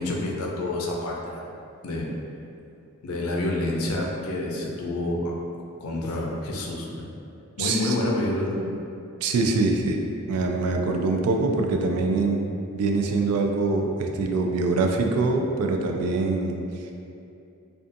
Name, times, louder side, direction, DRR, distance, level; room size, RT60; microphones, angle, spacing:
voice 1, 0.0-1.5 1.8-2.1 3.0-5.3 5.8-7.1 7.6-8.7, left 1 dB, 80° left, -1 dB, 0.4 m, -28 dB
voice 2, 7.6-8.1 9.2-10.0 10.3-12.4 12.7-16.6, right 3 dB, 90° right, 7 dB, 0.3 m, -24 dB
2.5 x 2.3 x 2.5 m, 2.6 s
head